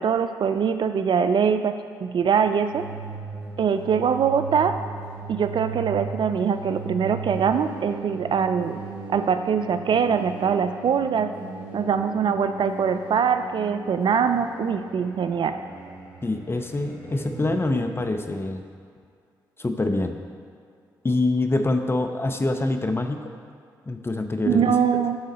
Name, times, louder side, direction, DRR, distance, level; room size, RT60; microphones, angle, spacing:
voice 1, 0.0-2.9 3.6-4.8 5.3-8.8 9.1-11.3 11.7-15.6 24.5-25.2, right 7 dB, 55° right, 9 dB, 0.4 m, -23 dB
sound 1, 2.4-18.0, right 4 dB, 90° right, 1.8 m, -37 dB
voice 2, 16.2-18.6 19.6-20.2 21.0-23.2 23.9-24.8, left 2 dB, 25° left, 6 dB, 0.7 m, -25 dB
10.5 x 3.8 x 4.2 m, 2.3 s
hypercardioid pair, 40°, 10 cm